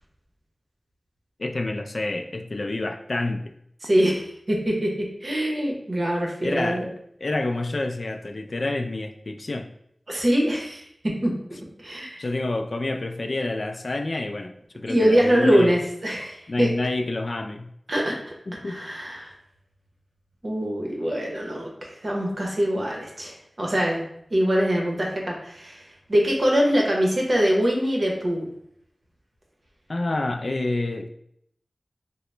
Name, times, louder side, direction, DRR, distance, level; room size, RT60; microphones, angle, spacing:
voice 1, 1.4-3.4 6.4-6.9 7.2-9.7 12.2-15.7 16.5-17.7 18.5-18.8 29.9-31.1, left 2 dB, 65° left, 6 dB, 0.3 m, -28 dB
voice 2, 3.8-6.9 10.1-12.2 14.9-16.7 17.9-18.3 18.6-19.3 20.4-24.0 24.3-25.8 26.1-28.5, equal, 55° right, -1 dB, 0.8 m, -23 dB
3.8 x 2.0 x 3.2 m, 0.71 s
wide cardioid pair, 75°, 0 cm